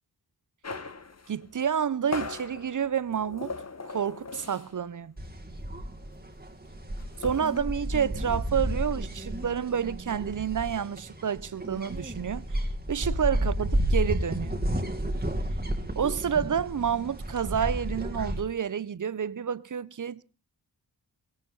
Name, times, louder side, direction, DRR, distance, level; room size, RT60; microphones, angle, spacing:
sound 1, 0.6-4.9 5.2-5.4 5.7-7.6, left 4 dB, 40° left, 1.2 m, -40 dB
voice 1, 1.3-3.5 3.8-5.1 7.2-12.5 12.9-14.6 16.0-20.2, right 8 dB, 50° right, 0.7 m, -29 dB
sound 2, 5.2-18.4, right 1 dB, 25° right, 2.2 m, -32 dB
17.5 x 17.0 x 3.9 m
wide cardioid pair, 65°, 40 cm